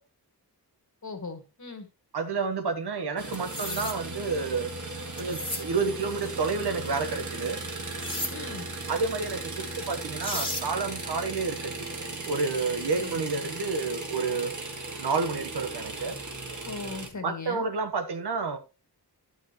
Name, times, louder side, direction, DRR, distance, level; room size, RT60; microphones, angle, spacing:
voice 1, 1.0-1.9 8.3-8.7 13.0-13.2 16.5-17.7, left 4 dB, 45° left, 1.9 m, -39 dB
voice 2, 2.1-4.7 5.2-7.6 8.9-14.5 15.0-16.2 17.2-18.6, right 4 dB, 80° right, 1.3 m, -30 dB
sound 1, 3.2-17.1, right 3 dB, 45° right, 1.8 m, -37 dB
sound 2, 3.3-4.0 5.2-5.6 8.0-8.3 9.8-9.9 10.2-10.7, left 1 dB, 10° left, 1.7 m, -33 dB
11.0 x 6.3 x 3.0 m
wide cardioid pair, 80°, 40 cm